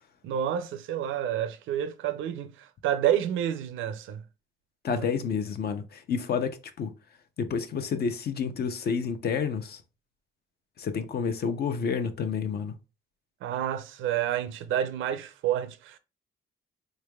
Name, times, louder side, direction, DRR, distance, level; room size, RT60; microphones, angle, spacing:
voice 1, 0.2-4.2 4.9-5.0 13.4-16.0, right 10 dB, 80° right, 0.5 m, -29 dB
voice 2, 4.8-6.9 7.4-9.8 10.8-12.7, left 6 dB, 55° left, 0.6 m, -29 dB
3.7 x 3.2 x 2.2 m
cardioid pair, 90°, 20 cm